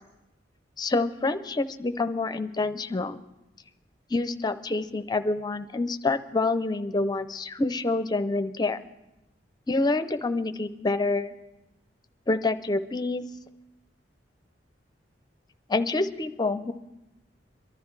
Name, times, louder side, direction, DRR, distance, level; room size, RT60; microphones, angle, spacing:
voice 1, 0.8-3.2 4.1-8.8 9.7-11.3 12.3-13.2 15.7-16.7, left 3 dB, 20° left, 10 dB, 0.5 m, -27 dB
23.5 x 12.5 x 3.2 m, 0.94 s
head